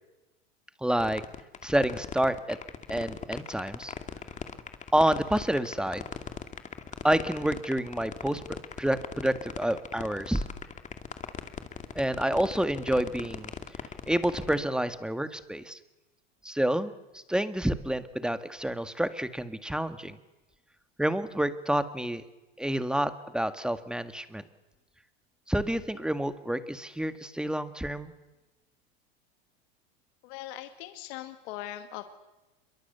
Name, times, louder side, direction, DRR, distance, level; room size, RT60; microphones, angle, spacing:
voice 1, 0.8-1.2 1.6-2.6 2.9-3.9 4.9-6.1 7.0-8.4 8.8-10.4 12.0-13.5 14.1-15.8 16.4-20.2 21.0-22.2 22.6-24.4 25.5-28.1, right 1 dB, 5° right, 10 dB, 1.8 m, -28 dB
sound 1, 1.0-14.6, left 7 dB, 25° left, 2.4 m, -39 dB
voice 2, 30.2-32.1, left 13 dB, 60° left, 8 dB, 2.2 m, -40 dB
27.0 x 23.0 x 8.2 m, 1.1 s
supercardioid pair, 115°, 31 cm